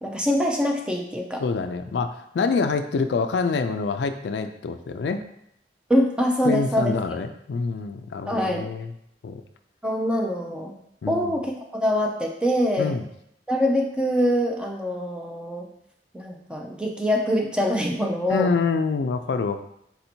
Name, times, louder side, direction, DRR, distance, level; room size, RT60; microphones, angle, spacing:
voice 1, 0.0-1.4 5.9-7.0 8.3-8.7 9.8-10.7 11.1-12.9 13.5-15.7 16.1-18.5, equal, 5° right, 1 dB, 0.5 m, -24 dB
voice 2, 1.4-5.2 6.4-8.9 9.2-9.4 11.0-11.4 12.8-13.1 18.3-19.6, left 4 dB, 70° left, 8 dB, 0.3 m, -26 dB
4.2 x 2.7 x 4.3 m, 0.75 s
head